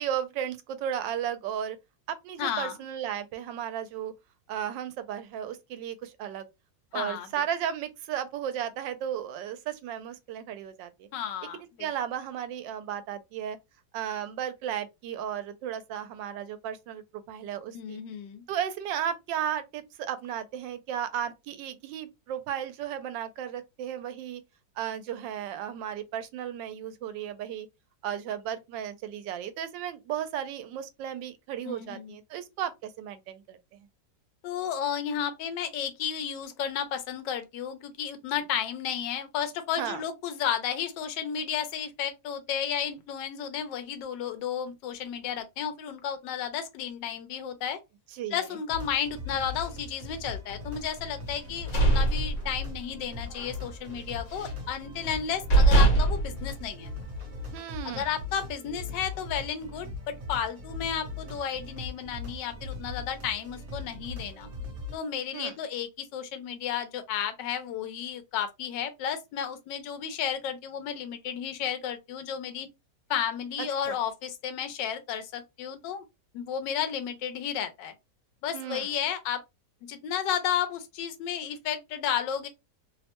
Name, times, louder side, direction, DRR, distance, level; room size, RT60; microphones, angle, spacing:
voice 1, 0.0-1.8 2.1-4.1 4.5-6.5 6.9-11.1 11.5-13.6 13.9-18.0 18.5-24.4 24.8-27.7 28.0-33.8 39.8-40.0 48.1-48.4 57.5-58.1 65.3-65.6 73.9-74.0 78.5-78.9, right 9 dB, 90° right, 1.3 m, -34 dB
voice 2, 2.4-2.8 6.9-7.3 11.1-11.6 17.7-18.4 31.6-32.2 34.4-47.8 48.3-56.9 57.8-64.5 64.9-72.7 73.1-76.0 76.3-77.9 78.4-79.4 79.9-82.5, left 8 dB, 85° left, 1.3 m, -33 dB
sound 1, 48.7-65.0, left 3 dB, 50° right, 1.3 m, -40 dB
sound 2, 51.4-53.0 53.3-53.6 53.9-54.7 55.1-55.2 55.5-57.3, right 2 dB, 55° left, 1.4 m, -23 dB
3.2 x 2.1 x 2.9 m
omnidirectional pair, 1.9 m